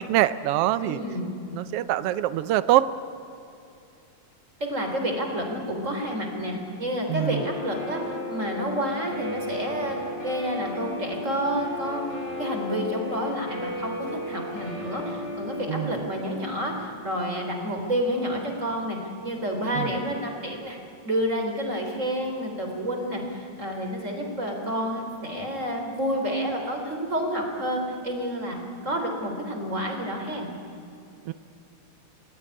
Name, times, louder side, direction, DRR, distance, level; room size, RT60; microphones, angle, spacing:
voice 1, 0.1-1.0 1.5-2.9 7.1-7.4 15.7-15.9 19.8-19.9 31.3-31.4, right 13 dB, 85° right, 14 dB, 1.3 m, -24 dB
voice 2, 0.8-1.3 4.6-10.0 10.2-20.8 21.0-28.6 28.8-30.5, equal, 25° right, 2 dB, 3.8 m, -29 dB
Guitar, 7.2-15.9, left 1 dB, 50° left, 6.8 m, -34 dB
26.5 x 20.5 x 9.8 m, 2.7 s
omnidirectional pair, 3.6 m